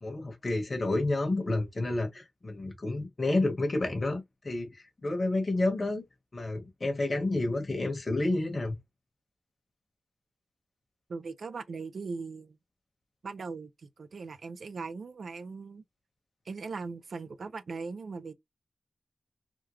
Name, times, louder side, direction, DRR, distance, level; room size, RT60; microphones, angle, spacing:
voice 1, 0.0-4.7 5.0-6.0 6.3-8.8, left 2 dB, 40° left, 1.3 m, -30 dB
voice 2, 11.1-12.6 13.2-15.8 16.5-18.3, right 4 dB, 75° right, 0.5 m, -39 dB
3.7 x 2.2 x 3.1 m
wide cardioid pair, 105°, 0 cm